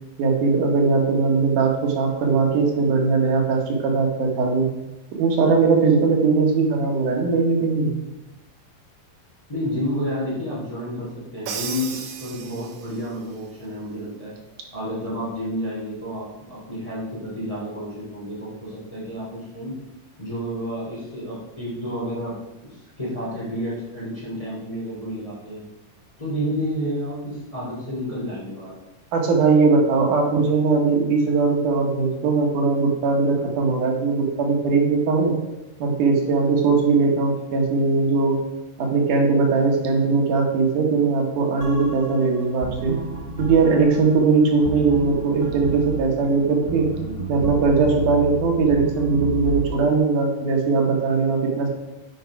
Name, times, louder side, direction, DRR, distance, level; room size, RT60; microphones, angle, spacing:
voice 1, 0.2-4.7 5.1-7.9 29.1-35.4 35.8-38.4 38.8-43.0 43.4-46.9 47.3-51.7, right 4 dB, 90° right, 1 dB, 2.9 m, -20 dB
voice 2, 9.5-14.3 14.7-19.7 20.2-22.4 22.7-25.6 26.2-28.7, equal, 10° left, -7 dB, 2.5 m, -30 dB
Crash cymbal, 11.5-13.1, right 7 dB, 75° right, 1.5 m, -34 dB
sound 1, 41.6-49.7, right 2 dB, 50° right, 0.6 m, -32 dB
9.0 x 5.1 x 4.7 m, 0.99 s
omnidirectional pair, 3.5 m